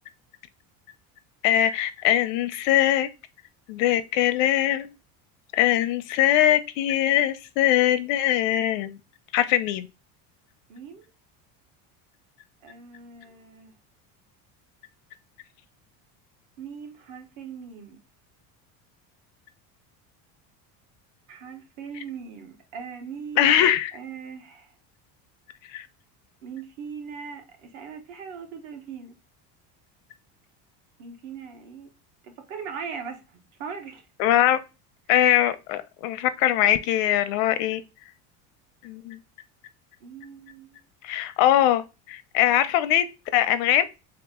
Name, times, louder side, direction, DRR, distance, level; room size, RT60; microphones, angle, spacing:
voice 1, 1.4-3.1 3.7-4.9 5.5-9.0 9.3-9.9 23.4-23.9 25.7-25.9 34.2-34.6 35.1-37.8 38.8-39.2 41.0-43.0 43.3-43.8, left 12 dB, 85° left, 0.7 m, -22 dB
voice 2, 10.7-11.1 12.6-13.7 16.6-18.0 21.3-23.5 23.9-24.7 26.4-29.2 31.0-31.9 32.2-34.0 40.0-40.8, right 6 dB, 60° right, 1.1 m, -40 dB
3.7 x 2.9 x 3.6 m
cardioid pair, 180°, 37 cm